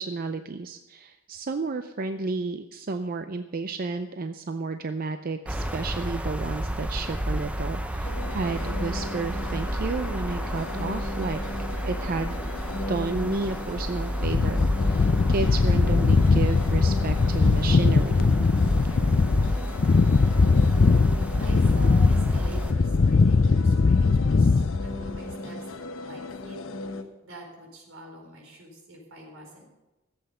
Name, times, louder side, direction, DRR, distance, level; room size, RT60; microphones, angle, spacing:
voice 1, 0.0-11.4 11.8-12.4 12.9-18.3, right 3 dB, 45° right, 9 dB, 0.5 m, -32 dB
sound 1, 5.5-22.7, equal, 5° right, 0.7 m, -31 dB
sound 2, 8.0-27.0, left 2 dB, 75° left, 1.0 m, -37 dB
sound 3, 14.2-25.3, left 4 dB, 45° left, 0.4 m, -21 dB
voice 2, 21.4-26.6 27.2-29.6, right 1 dB, 75° right, 0 dB, 4.3 m, -45 dB
15.0 x 8.0 x 6.7 m, 1.1 s
head